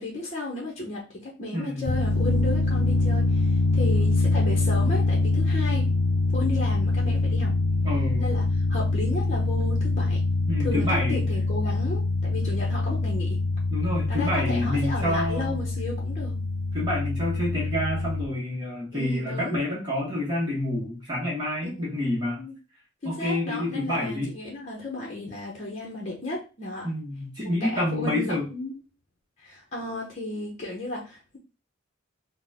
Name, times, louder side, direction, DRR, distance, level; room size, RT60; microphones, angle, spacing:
voice 1, 0.0-5.9 6.3-7.5 8.2-8.4 8.7-10.2 10.6-13.4 14.1-16.3 18.9-19.6 21.6-21.9 22.4-22.5 23.0-26.9 27.4-28.8 29.4-31.4, left 2 dB, 35° left, -2 dB, 0.8 m, -34 dB
voice 2, 1.5-1.9 7.8-8.3 10.5-11.2 13.7-15.6 16.7-22.4 23.0-24.3 26.8-28.5, left 1 dB, 20° right, -5 dB, 1.0 m, -28 dB
sound 1, 1.9-18.3, left 2 dB, 65° left, 0.4 m, -24 dB
3.8 x 2.1 x 3.4 m, 0.32 s
head